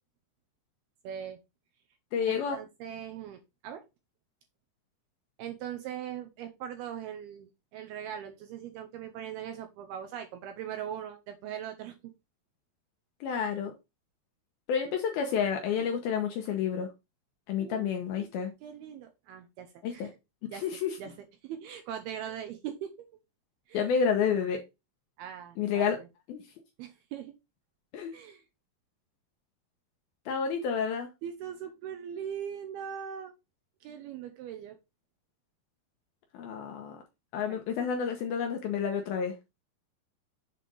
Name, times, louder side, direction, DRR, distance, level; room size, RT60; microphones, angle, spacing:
voice 1, 1.0-1.4 2.3-3.8 5.4-12.0 17.6-17.9 18.2-18.3 18.6-20.1 20.5-20.7 21.0-21.1 21.4-23.1 23.7-23.9 25.2-26.1 26.8-27.3 28.1-28.4 31.2-33.3 33.8-34.8 37.5-37.6, right 9 dB, 80° right, 2.4 m, -40 dB
voice 2, 2.1-2.6 13.2-13.7 14.7-16.9 17.5-18.5 19.8-20.1 20.4-21.0 23.7-24.6 25.6-26.0 26.3-26.4 27.9-28.1 30.3-31.1 36.3-37.0 37.3-39.4, left 7 dB, 75° left, 2.3 m, -30 dB
7.6 x 3.3 x 5.3 m
omnidirectional pair, 5.2 m